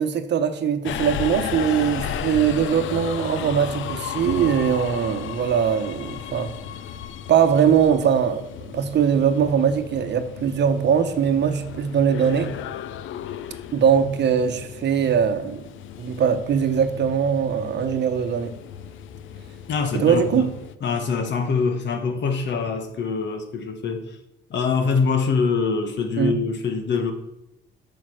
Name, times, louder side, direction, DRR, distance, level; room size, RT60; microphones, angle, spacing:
voice 1, 0.0-6.5 7.3-12.5 13.7-15.6 16.0-18.5 19.9-20.5 26.2-26.3, right 7 dB, 60° right, 0.9 m, -21 dB
Subway metro underground, 0.8-20.7, left 9 dB, 80° left, 0.6 m, -34 dB
voice 2, 19.7-20.5 20.8-24.2 24.5-27.1, left 5 dB, 65° left, 1.3 m, -24 dB
9.1 x 5.2 x 6.3 m
cardioid pair, 90°, 20 cm